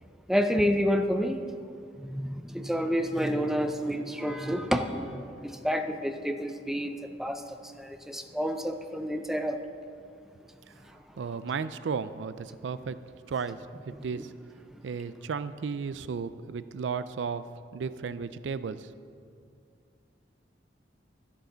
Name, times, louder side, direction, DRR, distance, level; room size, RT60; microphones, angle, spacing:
voice 1, 0.3-1.4 2.0-9.6 14.0-14.1 14.7-14.8, equal, ahead, 6 dB, 0.5 m, -29 dB
voice 2, 11.2-13.0 13.3-13.6 13.9-14.3 14.8-17.4 17.7-19.0, right 5 dB, 80° right, 14 dB, 0.4 m, -34 dB
13.0 x 11.0 x 3.9 m, 2.3 s
head